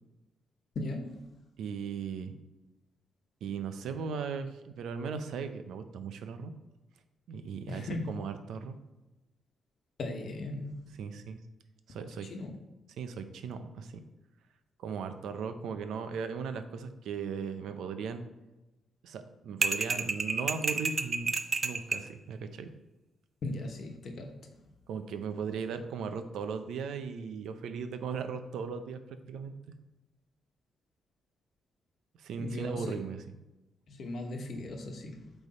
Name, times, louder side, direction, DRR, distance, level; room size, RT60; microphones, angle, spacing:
voice 1, 0.7-1.2 7.7-8.2 10.0-10.9 12.2-12.6 23.4-24.3 32.4-33.0 33.9-35.3, left 2 dB, 60° left, 3 dB, 1.1 m, -38 dB
voice 2, 1.6-2.3 3.4-6.5 7.3-8.8 11.0-11.4 11.9-12.3 13.0-14.0 14.8-18.3 19.0-21.4 21.6-22.7 24.9-29.0 29.3-29.5 32.2-33.2, right 6 dB, 85° right, 9 dB, 0.6 m, -37 dB
sound 1, 19.6-22.1, right 4 dB, 40° right, 0.5 m, -30 dB
8.1 x 3.4 x 4.2 m, 1.0 s
cardioid pair, 90°, 0 cm